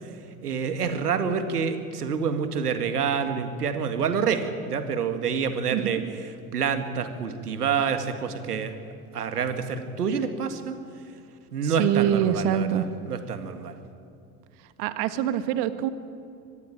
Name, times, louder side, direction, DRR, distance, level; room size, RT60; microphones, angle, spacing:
voice 1, 0.4-6.0 6.5-8.8 9.1-10.8 11.5-13.8, right 6 dB, 80° right, 9 dB, 2.1 m, -27 dB
voice 2, 11.6-12.9 14.8-15.9, right 11 dB, 60° right, 11 dB, 1.8 m, -24 dB
24.5 x 20.5 x 8.7 m, 2.5 s
figure-of-eight pair, 70°, 45 cm